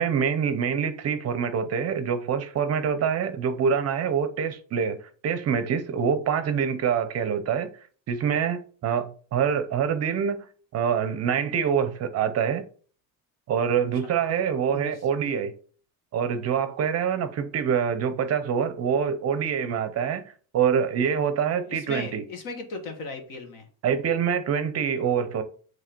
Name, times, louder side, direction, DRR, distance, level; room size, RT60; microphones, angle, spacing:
voice 1, 0.0-7.7 8.1-10.4 10.7-12.6 13.5-15.5 16.1-20.2 20.5-22.2 23.8-25.4, right 7 dB, 40° right, 0.6 m, -25 dB
voice 2, 21.7-23.6, left 3 dB, 55° left, 1.6 m, -37 dB
7.4 x 3.2 x 4.4 m
cardioid pair, 170°, 38 cm